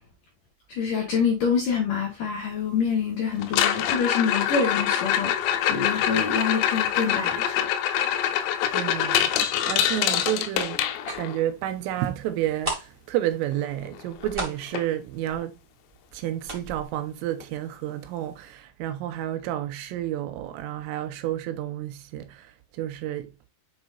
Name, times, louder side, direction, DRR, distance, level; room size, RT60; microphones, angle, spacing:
voice 1, 0.7-7.7 11.1-11.2, left 6 dB, 65° left, 2.2 m, -26 dB
sound 1, 3.4-11.4 13.7-13.8 14.0-14.3 14.8-14.9 15.4-15.5 17.4-17.5, left 10 dB, 85° left, 3.4 m, -25 dB
voice 2, 8.7-10.8 11.2-15.6 16.1-23.5, right 12 dB, 80° right, 3.4 m, -30 dB
sound 2, 12.3-12.4 12.6-18.2 18.4-18.5 19.0-19.2 19.5-19.6, right 1 dB, 50° right, 0.6 m, -36 dB
8.0 x 6.1 x 2.5 m
omnidirectional pair, 5.9 m